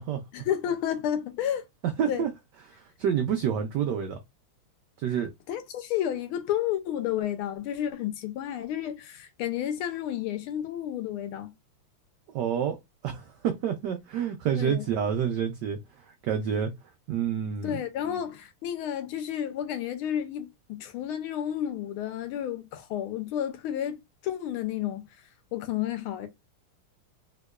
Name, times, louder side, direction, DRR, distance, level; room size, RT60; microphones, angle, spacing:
voice 1, 0.3-1.6 2.1-2.3 5.5-11.5 14.6-14.9 17.6-25.0 25.5-26.3, left 10 dB, 80° left, 1.5 m, -31 dB
voice 2, 1.8-2.3 2.7-4.2 5.0-5.3 12.3-12.8 13.0-16.7 17.1-17.8, right 8 dB, 85° right, 0.9 m, -28 dB
3.5 x 2.9 x 2.2 m
omnidirectional pair, 2.4 m